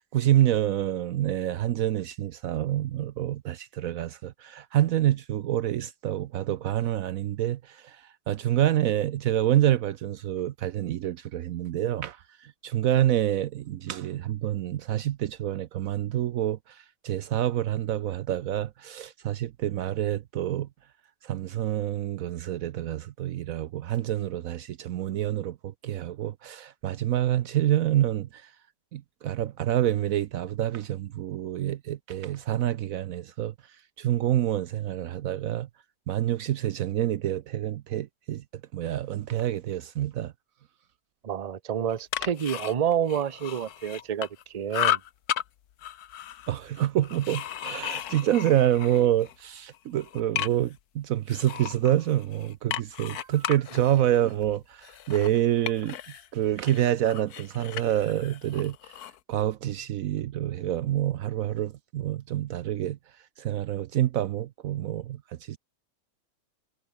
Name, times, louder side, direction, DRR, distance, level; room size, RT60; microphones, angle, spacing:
voice 1, 0.1-20.7 21.2-28.5 28.9-33.5 34.0-35.7 36.1-38.4 38.7-40.3 46.5-58.8 59.3-63.0 63.4-65.6, right 12 dB, 70° right, 1.0 m, -27 dB
voice 2, 41.2-45.0, right 9 dB, 40° right, 0.5 m, -28 dB
sound 1, 41.9-44.4 44.7-45.4 45.8-49.4 49.7-50.8 51.3-56.3 56.6-59.2, left 11 dB, 85° left, 1.4 m, -34 dB
omnidirectional pair, 1.6 m